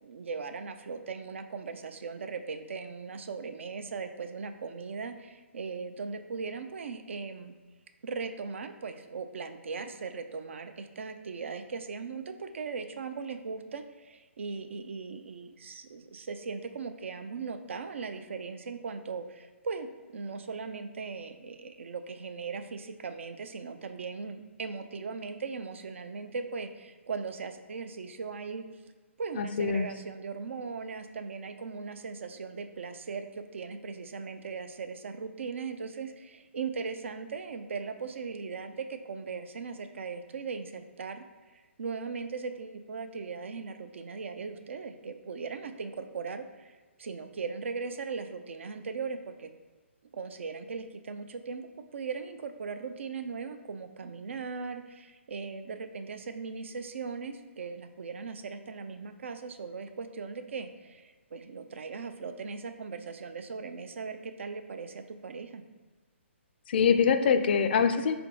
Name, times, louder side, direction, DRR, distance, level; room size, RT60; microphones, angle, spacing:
voice 1, 0.0-7.5 8.0-19.9 20.1-28.6 29.2-41.2 41.5-46.7 47.0-49.5 50.1-65.6, right 5 dB, 65° right, 8 dB, 0.4 m, -38 dB
voice 2, 29.4-29.9 66.7-68.1, left 6 dB, 50° left, 9 dB, 0.4 m, -24 dB
3.8 x 3.4 x 3.7 m, 1.3 s
figure-of-eight pair, 135°, 7 cm